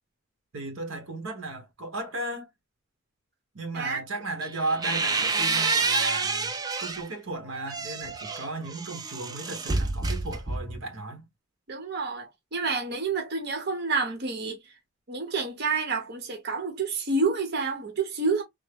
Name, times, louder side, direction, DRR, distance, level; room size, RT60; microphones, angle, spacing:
voice 1, 0.5-2.5 3.5-11.3, right 2 dB, 80° right, 1.0 m, -35 dB
sound 1, 4.4-7.1 7.5-10.9, right 4 dB, 20° right, 0.4 m, -28 dB
voice 2, 11.7-14.6 15.1-18.4, right 4 dB, 55° right, 0.8 m, -29 dB
3.5 x 2.0 x 3.3 m
head